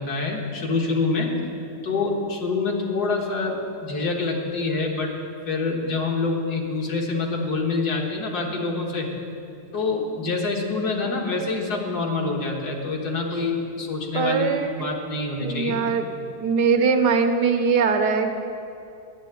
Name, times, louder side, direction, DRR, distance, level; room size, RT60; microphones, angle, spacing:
voice 1, 0.0-1.3 1.8-5.1 5.5-9.1 9.7-15.8, left 3 dB, 70° left, 0 dB, 2.0 m, -26 dB
voice 2, 14.1-14.9 15.4-16.0 16.4-18.4, right 5 dB, 85° right, 6 dB, 1.5 m, -21 dB
10.5 x 7.1 x 9.2 m, 2.6 s
omnidirectional pair, 1.8 m